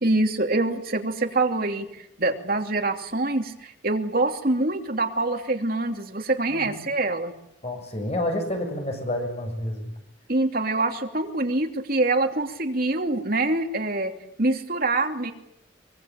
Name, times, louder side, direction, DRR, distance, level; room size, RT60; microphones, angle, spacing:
voice 1, 0.0-7.3 10.3-14.1 14.4-15.3, right 2 dB, 50° right, 5 dB, 3.0 m, -25 dB
voice 2, 6.5-6.8 7.6-9.9, left 1 dB, 35° left, 4 dB, 7.2 m, -29 dB
24.5 x 22.0 x 8.9 m, 0.78 s
head